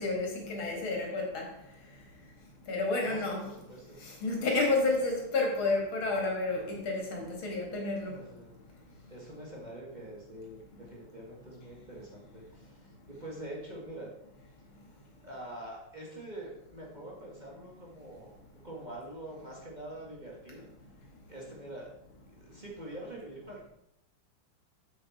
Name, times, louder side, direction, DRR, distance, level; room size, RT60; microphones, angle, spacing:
voice 1, 0.0-3.4 3.9-8.3 8.7-8.8 10.7-10.8, left 3 dB, 90° left, -1 dB, 3.0 m, -31 dB
voice 2, 3.0-4.0 8.1-8.5 9.1-14.1 15.2-18.4 18.6-20.7 21.3-21.9 22.4-23.7, right 1 dB, 25° right, -3 dB, 1.7 m, -45 dB
7.8 x 7.3 x 4.2 m, 0.79 s
omnidirectional pair, 2.2 m